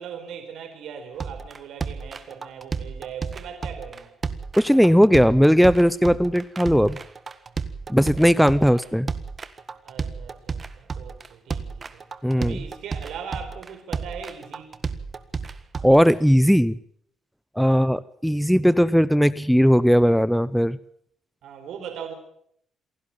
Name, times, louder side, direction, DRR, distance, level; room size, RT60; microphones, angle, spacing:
voice 1, 0.0-4.1 8.6-8.8 9.8-12.0 12.4-14.7 17.6-17.9 21.4-22.1, right 7 dB, 75° right, 6 dB, 4.5 m, -39 dB
sound 1, 1.2-16.1, right 5 dB, 40° right, 1.6 m, -32 dB
voice 2, 4.5-7.0 7.9-9.1 12.2-12.6 15.8-16.8 17.6-20.8, equal, ahead, 17 dB, 0.7 m, -18 dB
27.5 x 11.5 x 8.9 m, 0.68 s
cardioid pair, 85°, 0 cm